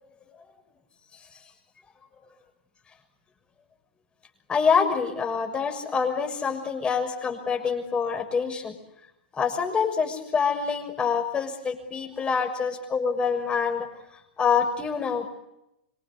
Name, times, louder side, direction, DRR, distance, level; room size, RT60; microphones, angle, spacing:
voice 1, 4.5-8.8 9.4-13.9 14.4-15.3, left 6 dB, 20° left, 4 dB, 6.4 m, -26 dB
26.5 x 24.5 x 8.5 m, 0.86 s
hypercardioid pair, 115°, 5 cm